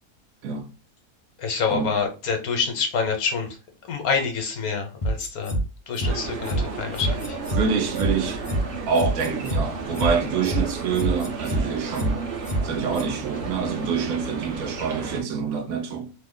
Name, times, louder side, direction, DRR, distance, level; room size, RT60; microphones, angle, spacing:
voice 1, 1.4-3.6 3.9-5.6 5.9-7.4, left 5 dB, 70° left, 1.3 m, -27 dB
sound 1, 5.0-5.6 6.0-6.1 6.5-6.6 7.0-7.6 8.0-8.1 8.5-8.6 9.0-9.6 10.0-10.1 10.5-10.6 11.0-11.6 12.0-12.1 12.5-12.6 13.0-13.1, right 1 dB, 40° left, 0.5 m, -25 dB
sound 2, 6.0-15.2, right 4 dB, 50° right, 0.9 m, -33 dB
voice 2, 7.5-8.4 8.9-12.2 12.6-16.1, right 6 dB, 70° right, 1.0 m, -26 dB
3.1 x 2.0 x 3.6 m
omnidirectional pair, 1.6 m